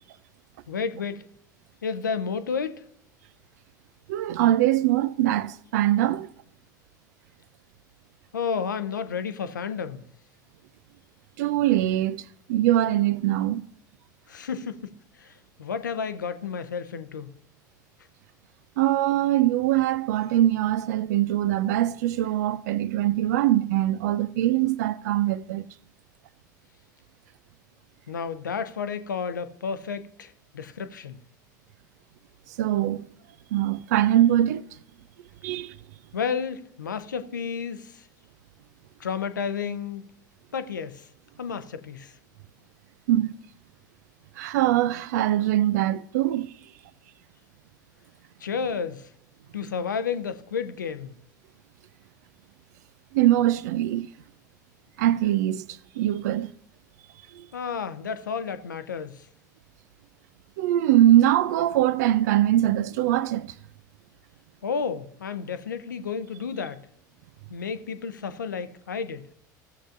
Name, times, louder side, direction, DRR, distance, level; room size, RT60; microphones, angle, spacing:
voice 1, 0.7-1.2 1.8-2.9 8.3-10.0 14.3-17.3 28.1-31.2 36.1-38.1 39.0-40.0 40.5-41.1 41.4-42.2 48.4-49.1 49.5-51.1 57.5-59.3 64.6-66.8 67.5-69.3, left 6 dB, 75° left, 0.6 m, -31 dB
voice 2, 4.1-6.3 11.4-13.7 18.8-25.7 32.6-33.0 33.5-34.7 35.4-35.8 43.1-43.4 44.4-46.5 53.1-54.1 55.0-56.5 57.3-57.5 60.6-63.5, right 13 dB, 60° right, 0.4 m, -22 dB
16.0 x 7.4 x 2.6 m
figure-of-eight pair, 70°, 10 cm